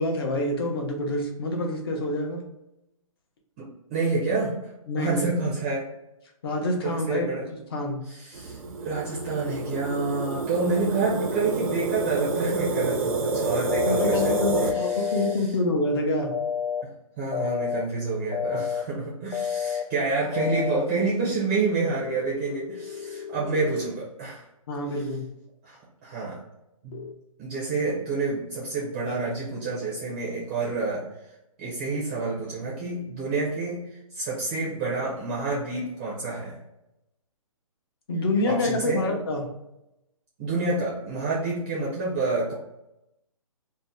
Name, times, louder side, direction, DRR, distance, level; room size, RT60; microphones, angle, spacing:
voice 1, 0.0-2.4 4.9-5.3 6.4-8.0 13.8-16.3 24.7-25.2 38.1-39.4, left 1 dB, 45° left, 1 dB, 0.7 m, -27 dB
voice 2, 3.9-4.5 5.0-5.8 6.8-7.4 8.1-15.3 17.2-24.5 25.6-26.4 26.8-27.1 27.4-31.0 31.6-36.6 38.4-39.1 40.4-42.5, right 3 dB, 20° right, -5 dB, 0.5 m, -28 dB
sound 1, 8.3-14.7, right 3 dB, 70° right, 0.5 m, -28 dB
sound 2, 13.7-15.3 16.3-16.8 17.3-17.8 18.3-18.8 19.3-19.8 20.3-20.8 21.6-23.9 26.9-27.1, left 7 dB, 70° left, 0.4 m, -30 dB
2.7 x 2.1 x 3.4 m, 0.88 s
hypercardioid pair, 160°, 18 cm